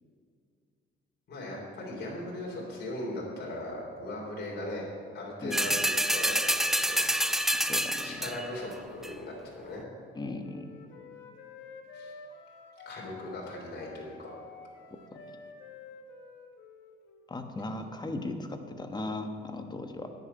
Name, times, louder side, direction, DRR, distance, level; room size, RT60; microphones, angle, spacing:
voice 1, 1.3-4.9 5.1-7.0 8.0-9.9 11.9-12.1 12.8-14.3, left 1 dB, 50° left, -3 dB, 3.5 m, -38 dB
sound 1, 5.5-8.6 9.0-9.1, equal, ahead, 0.5 m, -27 dB
voice 2, 7.5-8.3 10.1-10.7 14.9-15.2 17.3-20.1, left 2 dB, 20° left, 6 dB, 1.1 m, -38 dB
Wind instrument woodwind instrument, 10.0-17.4, left 4 dB, 70° left, 1.4 m, -50 dB
10.0 x 7.0 x 8.7 m, 2.3 s
cardioid pair, 100°, 21 cm